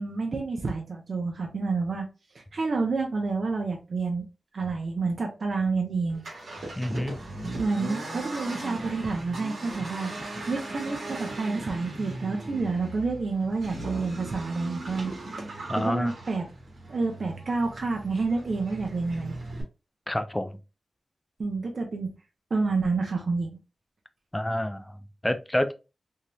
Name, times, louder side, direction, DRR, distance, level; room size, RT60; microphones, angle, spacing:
voice 1, 0.0-2.1 2.3-4.3 4.5-6.2 7.6-10.1 10.5-15.5 15.8-16.4 16.9-19.4 21.4-22.1 22.5-23.6, right 3 dB, 60° right, 0.6 m, -29 dB
Accelerating revving vroom, 6.1-19.6, right 2 dB, 90° right, 1.1 m, -38 dB
voice 2, 6.8-7.2 15.7-16.1 20.1-20.5 24.3-25.7, left 1 dB, 10° left, 0.3 m, -28 dB
3.0 x 2.7 x 2.2 m
wide cardioid pair, 110°, 0 cm